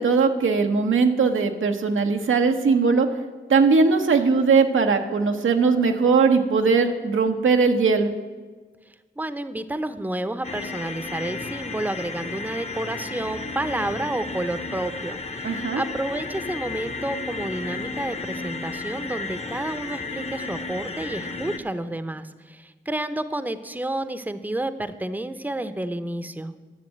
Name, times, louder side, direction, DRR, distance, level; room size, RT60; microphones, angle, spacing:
voice 1, 0.0-3.1 3.5-8.1 15.4-15.8, right 4 dB, 85° right, 4 dB, 1.1 m, -20 dB
voice 2, 9.2-26.5, right 1 dB, 10° right, 12 dB, 0.8 m, -30 dB
sound 1, 10.4-21.6, left 3 dB, 35° left, 1.0 m, -33 dB
11.0 x 7.0 x 9.2 m, 1.4 s
cardioid pair, 60°, 20 cm